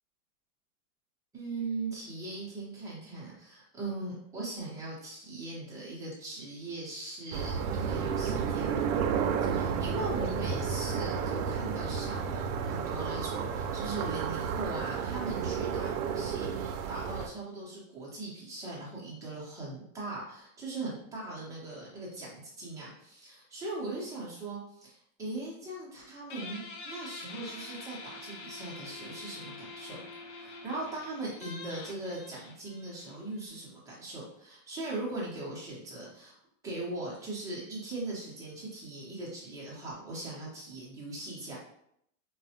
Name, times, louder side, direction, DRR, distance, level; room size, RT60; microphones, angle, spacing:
voice 1, 1.3-8.8 9.4-36.4 36.6-41.6, right 2 dB, 10° right, -6 dB, 0.5 m, -40 dB
sound 1, 7.3-17.3, right 6 dB, 70° right, 0.5 m, -32 dB
Guitar, 26.3-33.5, left 3 dB, 55° left, 0.7 m, -46 dB
3.8 x 2.1 x 2.7 m, 0.73 s
supercardioid pair, 145°, 45 cm